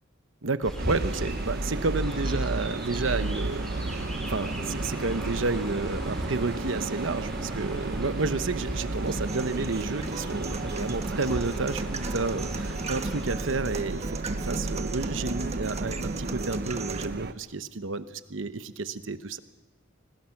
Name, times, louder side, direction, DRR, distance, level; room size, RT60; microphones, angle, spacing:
voice 1, 0.4-19.4, right 3 dB, 80° right, 11 dB, 1.0 m, -31 dB
Chirp tweet, 0.6-13.3, equal, ahead, 4.8 m, -38 dB
sound 1, 0.8-17.3, right 2 dB, 55° right, 0.8 m, -33 dB
sound 2, 9.1-17.0, right 2 dB, 35° right, 1.3 m, -36 dB
26.0 x 19.5 x 5.9 m, 1.2 s
head